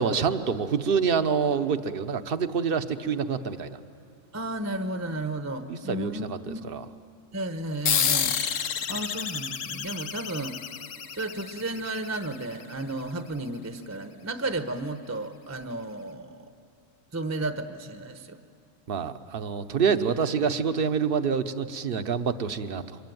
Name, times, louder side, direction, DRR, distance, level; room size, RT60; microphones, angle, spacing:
voice 1, 0.0-3.8 5.7-6.8 18.9-23.0, right 6 dB, 50° right, 10 dB, 1.0 m, -27 dB
voice 2, 4.3-6.6 7.3-10.6 11.1-16.5 17.1-18.4, right 2 dB, 15° right, 7 dB, 0.8 m, -33 dB
sound 1, 7.9-12.8, left 7 dB, 80° left, 1.3 m, -30 dB
24.5 x 22.0 x 9.3 m, 2.4 s
omnidirectional pair, 1.3 m